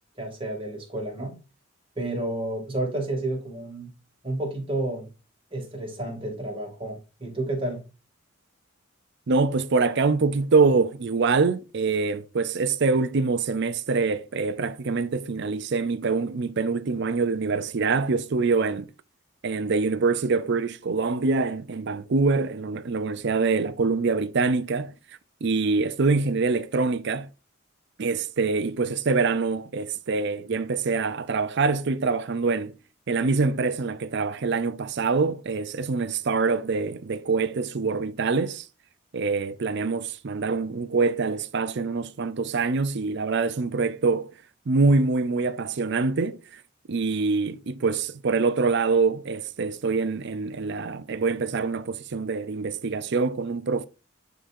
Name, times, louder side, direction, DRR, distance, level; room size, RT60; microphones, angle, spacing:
voice 1, 0.2-1.4 2.0-3.9 4.2-5.1 5.5-7.8, right 2 dB, 25° right, 2.5 m, -31 dB
voice 2, 9.3-18.9 19.4-24.9 25.4-27.3 28.0-32.7 33.1-38.7 39.1-44.3 44.7-46.6 46.9-53.9, right 4 dB, 60° right, 0.5 m, -25 dB
11.5 x 3.8 x 2.6 m
head